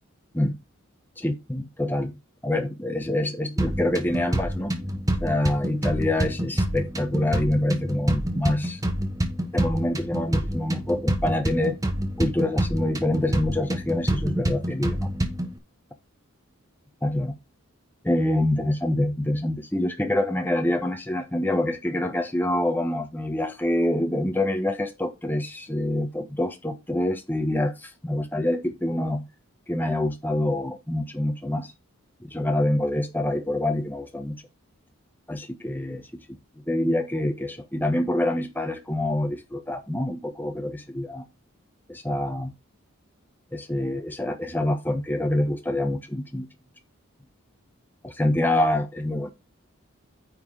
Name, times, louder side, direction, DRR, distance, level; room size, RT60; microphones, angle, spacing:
voice 1, 1.2-4.7 5.2-8.8 9.5-11.8 12.2-15.1 17.0-17.3 18.0-29.2 29.7-31.7 32.2-34.4 35.3-36.2 36.7-41.2 41.9-42.5 43.5-46.5 48.0-49.3, left 1 dB, 10° left, 1.2 m, -26 dB
sound 1, 3.6-15.6, right 1 dB, 15° right, 1.2 m, -27 dB
9.4 x 4.6 x 4.8 m
head